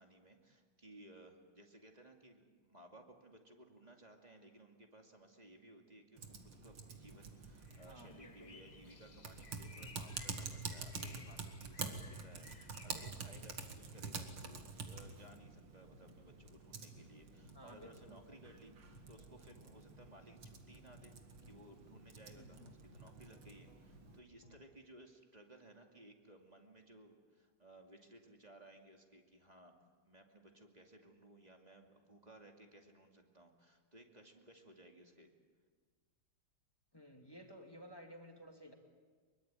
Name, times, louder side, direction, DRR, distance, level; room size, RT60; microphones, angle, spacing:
voice 1, 0.0-18.7 19.1-21.2 21.5-29.7 30.0-35.3, right 1 dB, 20° right, 3 dB, 2.5 m, -60 dB
Typing, 6.2-24.2, right 4 dB, 75° right, 2.9 m, -49 dB
sound 1, 7.2-13.1, left 4 dB, 45° left, 0.5 m, -60 dB
voice 2, 7.8-8.6 17.5-18.2 22.3-22.7 36.9-38.7, equal, 10° left, 3 dB, 2.3 m, -55 dB
sound 2, 13.7-24.6, left 3 dB, 65° left, 3.0 m, -65 dB
24.0 x 23.5 x 9.0 m, 1.5 s
omnidirectional pair, 2.4 m